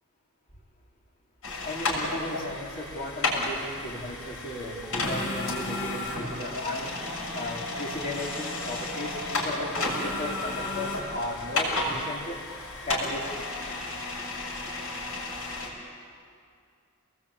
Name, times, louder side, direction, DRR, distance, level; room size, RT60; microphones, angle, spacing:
sound 1, 1.4-15.7, left 2 dB, 65° left, 7.3 m, -32 dB
voice 1, 1.6-6.9 7.3-12.4 12.8-13.5, left 1 dB, 40° left, -2 dB, 3.7 m, -36 dB
29.5 x 19.5 x 8.8 m, 2.3 s
head